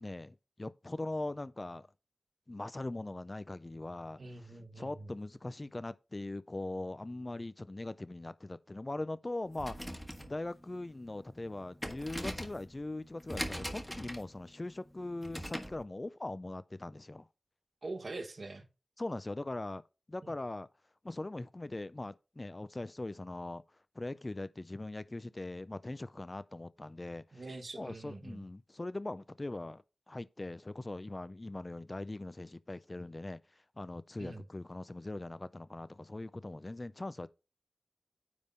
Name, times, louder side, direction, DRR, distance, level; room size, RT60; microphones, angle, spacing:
voice 1, 0.0-1.9 2.5-4.2 4.8-9.8 10.3-17.3 19.0-19.8 20.1-20.7 21.0-23.6 24.0-27.4 27.7-33.4 33.8-37.3, left 2 dB, 30° left, 0.4 m, -41 dB
voice 2, 4.2-5.1 17.8-18.7 20.2-20.3 27.3-28.4 34.2-34.4, right 2 dB, 55° right, 1.3 m, -44 dB
sound 1, 9.5-15.8, equal, 5° left, 1.3 m, -42 dB
9.5 x 3.5 x 5.3 m
wide cardioid pair, 100°, 0 cm